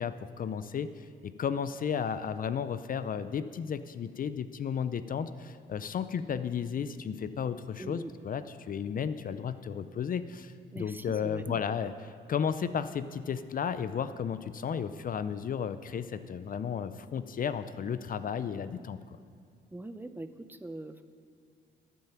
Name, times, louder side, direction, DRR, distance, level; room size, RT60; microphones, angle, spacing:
voice 1, 0.0-11.9 12.3-19.0, left 7 dB, 45° left, 12 dB, 0.5 m, -33 dB
voice 2, 7.8-8.1 10.7-11.6 19.7-21.0, right 2 dB, 10° right, 10 dB, 0.6 m, -42 dB
13.5 x 9.2 x 5.8 m, 2.3 s
cardioid pair, 90°, 20 cm